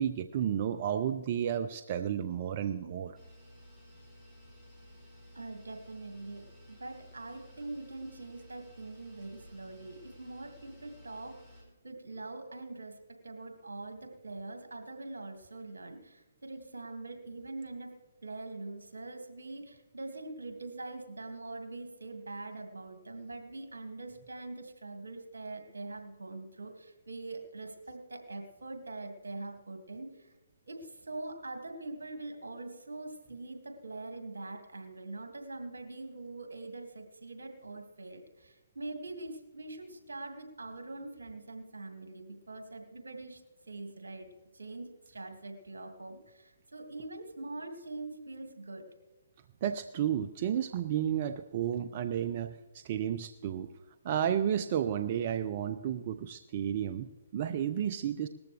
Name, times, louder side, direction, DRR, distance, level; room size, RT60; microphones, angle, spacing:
voice 1, 0.0-3.2 49.6-52.6 52.8-53.7 54.0-58.3, right 9 dB, 40° right, 10 dB, 0.6 m, -32 dB
sound 1, 3.1-11.6, left 1 dB, 10° right, 4.4 m, -55 dB
voice 2, 5.3-11.4 11.8-17.9 18.2-30.3 30.7-43.4 43.7-44.3 44.5-48.9, right 2 dB, 80° right, 5 dB, 2.2 m, -43 dB
19.0 x 14.0 x 3.4 m, 1.1 s
figure-of-eight pair, 140°, 0 cm